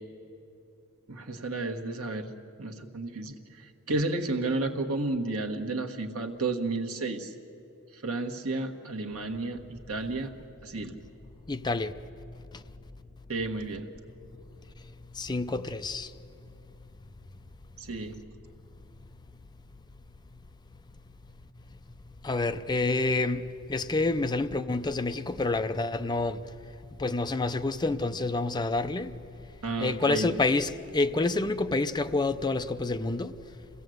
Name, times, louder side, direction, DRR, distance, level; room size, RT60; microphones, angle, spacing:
voice 1, 1.1-2.3 2.6-3.4 3.9-7.3 8.0-10.3 10.6-10.9 13.3-13.9 17.8-18.1 29.6-30.3, right 2 dB, 70° right, 1.5 m, -32 dB
voice 2, 11.5-11.9 15.2-16.1 22.2-23.4 23.7-26.4 27.0-29.1 29.8-33.3, left 3 dB, 20° left, 0.5 m, -28 dB
27.0 x 17.0 x 7.9 m
head